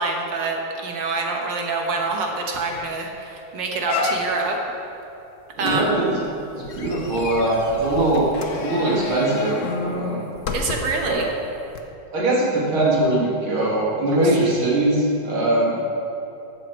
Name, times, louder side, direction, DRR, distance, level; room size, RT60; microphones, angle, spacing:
voice 1, 0.0-4.6 5.6-5.9 10.5-11.3, right 3 dB, 65° right, 1 dB, 1.9 m, -26 dB
sound 1, 2.1-2.2 2.5-2.9 3.3-3.4 3.8-4.6 5.6-11.1 11.7-11.8, left 3 dB, 55° left, 0.9 m, -30 dB
voice 2, 5.6-6.2 6.5-8.2 8.5-10.2 11.0-11.2 12.1-15.8, right 1 dB, 85° right, -6 dB, 3.0 m, -21 dB
14.0 x 7.7 x 4.6 m, 2.8 s
omnidirectional pair, 2.2 m